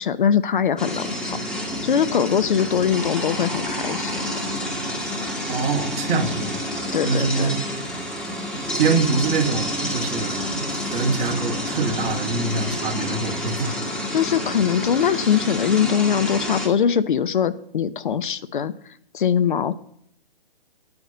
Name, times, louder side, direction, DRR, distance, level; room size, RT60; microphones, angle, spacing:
voice 1, 0.0-1.4 1.8-4.4 6.9-7.5 14.1-18.7 19.1-19.8, left 8 dB, 60° left, 12 dB, 0.9 m, -22 dB
sound 1, 0.8-16.7, equal, 5° left, 2.1 m, -29 dB
voice 2, 5.5-6.6 7.0-7.6 8.8-13.7, right 4 dB, 25° right, 1 dB, 2.3 m, -24 dB
9.9 x 9.6 x 9.7 m, 0.69 s
figure-of-eight pair, 130°, 29 cm